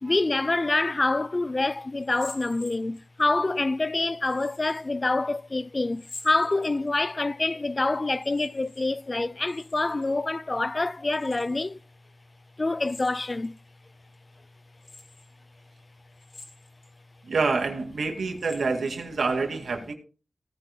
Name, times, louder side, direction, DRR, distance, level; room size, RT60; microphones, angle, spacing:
voice 1, 0.0-11.8 12.6-13.5, left 2 dB, 35° left, 0.4 m, -26 dB
sound 1, 2.0-3.2 4.2-4.8 5.9-7.1 8.1-8.8 9.1-10.1 11.1-11.7 12.8-13.6 14.1-14.2 14.8-15.3 16.1-16.9 17.4-17.5 18.2-19.2, left 3 dB, 65° left, 4.1 m, -47 dB
voice 2, 17.2-19.9, right 4 dB, 90° right, 2.1 m, -27 dB
18.0 x 9.7 x 2.2 m
wide cardioid pair, 80°, 0 cm